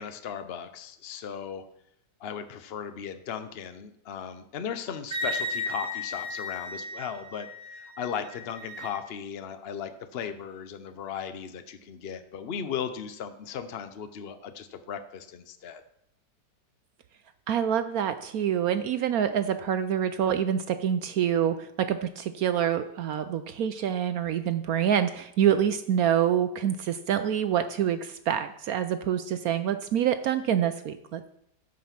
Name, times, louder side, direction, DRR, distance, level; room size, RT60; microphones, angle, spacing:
voice 1, 0.0-1.7 2.2-15.8, left 7 dB, 70° left, 10 dB, 0.5 m, -37 dB
Wind instrument woodwind instrument, 5.1-9.0, left 2 dB, 35° right, 1.8 m, -35 dB
voice 2, 17.5-31.3, right 9 dB, 70° right, 10 dB, 0.9 m, -26 dB
15.0 x 5.3 x 5.8 m, 0.75 s
omnidirectional pair, 2.0 m